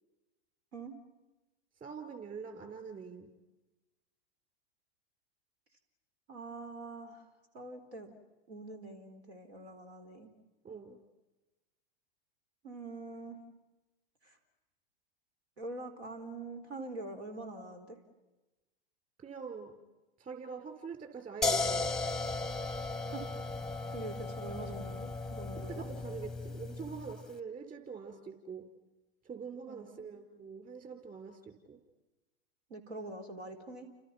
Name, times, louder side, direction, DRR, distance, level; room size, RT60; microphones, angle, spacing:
voice 1, 1.8-3.3 10.6-11.0 19.2-19.7 20.2-21.9 25.7-28.6 29.2-31.8, right 5 dB, 25° right, 6 dB, 5.0 m, -44 dB
voice 2, 6.3-7.2 7.5-8.1 8.5-10.3 12.6-13.4 14.2-14.4 15.6-18.0 23.1-23.4 23.9-25.9 29.7-30.1 32.7-33.9, right 2 dB, 80° right, 7 dB, 4.4 m, -44 dB
sound 1, 21.4-27.2, left 3 dB, ahead, 0.9 m, -36 dB
30.0 x 27.5 x 6.1 m, 1.1 s
hypercardioid pair, 105°, 32 cm